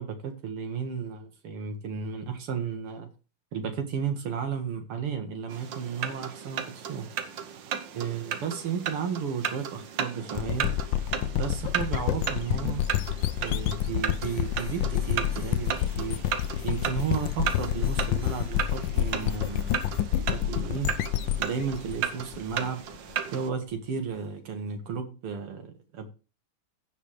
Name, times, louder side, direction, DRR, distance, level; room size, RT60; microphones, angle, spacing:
voice 1, 0.0-3.1 3.5-7.1 7.9-10.8 11.3-12.8 13.4-16.2 16.6-20.9 21.4-22.8 23.3-26.1, right 6 dB, 85° right, 2.6 m, -33 dB
sound 1, 5.5-23.5, right 8 dB, 65° right, 1.6 m, -35 dB
sound 2, 10.3-23.0, left 12 dB, 70° left, 1.1 m, -29 dB
sound 3, 14.2-20.0, left 9 dB, 45° left, 1.1 m, -41 dB
16.0 x 5.5 x 3.2 m
omnidirectional pair, 2.4 m